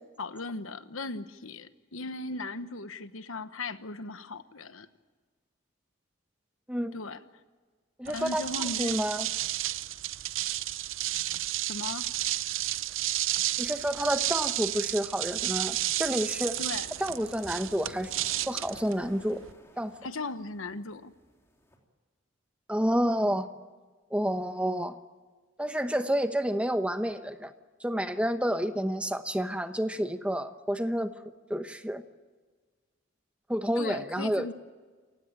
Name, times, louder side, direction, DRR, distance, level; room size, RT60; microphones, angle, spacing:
voice 1, 0.2-4.9 6.9-7.2 8.1-9.0 11.7-12.1 16.6-16.9 20.0-21.1 33.8-34.5, left 3 dB, 85° left, 12 dB, 1.1 m, -37 dB
voice 2, 8.0-8.4 8.8-9.3 13.6-16.6 17.0-18.1 18.5-19.4 19.8-19.9 22.7-23.5 24.1-24.9 25.6-27.5 27.8-31.1 31.5-32.0 33.5-34.5, equal, 5° right, 9 dB, 0.9 m, -29 dB
sound 1, 8.0-19.5, right 14 dB, 75° right, 0.7 m, -32 dB
sound 2, 16.2-21.8, equal, 15° left, 3.3 m, -54 dB
28.5 x 16.0 x 8.9 m, 1.4 s
head